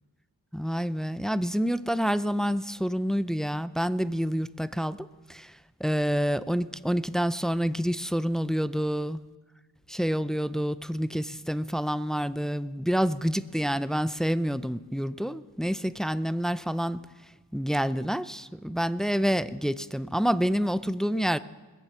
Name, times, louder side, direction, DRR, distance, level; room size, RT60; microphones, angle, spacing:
voice 1, 0.5-9.2 9.9-17.0 17.5-21.4, equal, ahead, 15 dB, 0.4 m, -28 dB
20.0 x 7.2 x 8.3 m, 1.3 s
wide cardioid pair, 55°, 38 cm